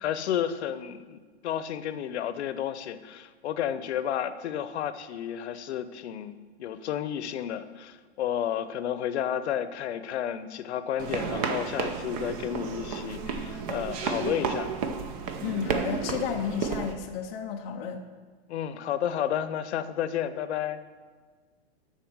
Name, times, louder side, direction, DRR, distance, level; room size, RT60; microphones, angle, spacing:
voice 1, 0.0-14.7 18.5-20.8, left 10 dB, 85° left, 12 dB, 0.7 m, -32 dB
sound 1, 11.0-16.9, right 5 dB, 35° right, 0.7 m, -32 dB
voice 2, 15.4-18.0, left 7 dB, 20° left, 1 dB, 0.4 m, -32 dB
12.0 x 4.3 x 6.1 m, 1.5 s
supercardioid pair, 160°, 33 cm